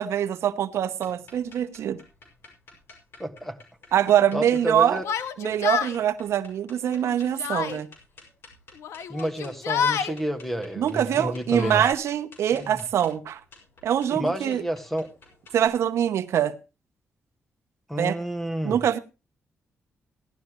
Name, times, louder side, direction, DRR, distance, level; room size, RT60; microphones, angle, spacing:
voice 1, 0.0-2.0 3.9-5.0 5.4-7.9 10.8-13.4 13.8-14.6 15.5-16.5 18.0-18.2 18.6-19.0, right 10 dB, 75° right, 0.8 m, -24 dB
sound 1, 1.0-15.7, left 3 dB, 55° left, 5.6 m, -52 dB
voice 2, 3.2-3.6 4.3-5.0 9.1-11.8 12.5-12.8 14.1-15.1 17.9-18.8, right 1 dB, 5° left, 1.4 m, -30 dB
Yell, 5.0-6.0 6.8-7.8 8.8-10.1 11.0-11.9, left 7 dB, 90° left, 1.1 m, -29 dB
16.0 x 11.5 x 3.0 m
cardioid pair, 135°, 5 cm